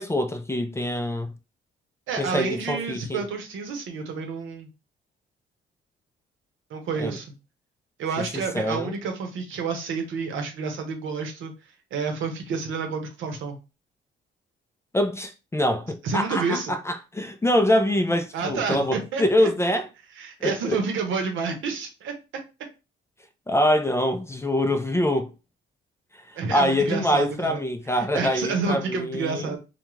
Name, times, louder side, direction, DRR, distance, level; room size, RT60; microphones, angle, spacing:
voice 1, 0.0-1.3 2.2-3.2 7.0-7.2 8.3-8.9 14.9-19.9 20.4-20.8 23.5-25.3 26.5-29.6, left 1 dB, 15° left, 0.3 m, -24 dB
voice 2, 2.1-4.7 6.7-7.3 8.0-11.5 11.9-13.6 16.0-16.7 18.3-19.5 20.2-22.1 26.4-27.6 27.9-29.6, right 5 dB, 75° right, 0.8 m, -29 dB
2.3 x 2.2 x 3.1 m
cardioid pair, 90°, 20 cm